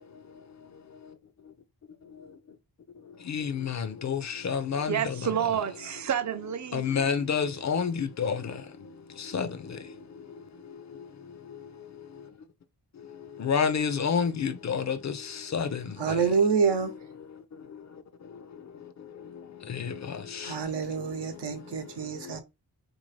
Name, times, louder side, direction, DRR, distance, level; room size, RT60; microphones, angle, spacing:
voice 1, 3.3-5.1 6.7-8.4 9.3-9.5 13.4-15.2 15.5-15.8 19.7-19.9 20.4-20.5, left 6 dB, 45° left, 0.4 m, -28 dB
voice 2, 4.9-7.0, right 9 dB, 45° right, 0.5 m, -29 dB
voice 3, 16.0-16.9 20.4-22.4, right 5 dB, 90° right, 0.9 m, -27 dB
3.8 x 2.6 x 3.1 m
wide cardioid pair, 155°, 40 cm